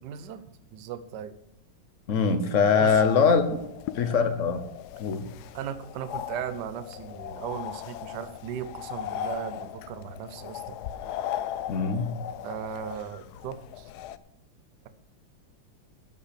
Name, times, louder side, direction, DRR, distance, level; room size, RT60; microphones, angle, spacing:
voice 1, 0.0-0.4 0.7-1.3 2.8-3.0 5.5-10.8 12.4-13.9, right 8 dB, 65° right, 11 dB, 1.2 m, -37 dB
voice 2, 2.1-3.6 3.9-4.6 5.0-5.3 11.7-12.1, left 5 dB, 50° left, 9 dB, 1.0 m, -22 dB
sound 1, 2.9-14.2, left 11 dB, 80° left, 0.8 m, -38 dB
12.0 x 5.5 x 8.4 m, 0.81 s
omnidirectional pair, 2.3 m